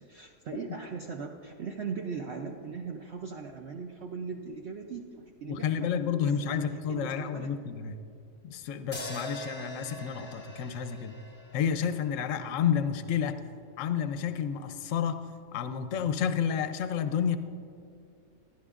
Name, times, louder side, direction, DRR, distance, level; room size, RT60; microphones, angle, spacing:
voice 1, 0.0-7.5, right 5 dB, 65° right, 2 dB, 0.7 m, -39 dB
voice 2, 5.5-8.0 8.4-11.1 11.5-13.4 13.8-15.2 15.5-17.4, left 8 dB, 65° left, 10 dB, 0.9 m, -30 dB
sound 1, 8.9-13.2, left 1 dB, 10° left, 0.8 m, -44 dB
16.5 x 11.0 x 2.4 m, 2.4 s
omnidirectional pair, 1.7 m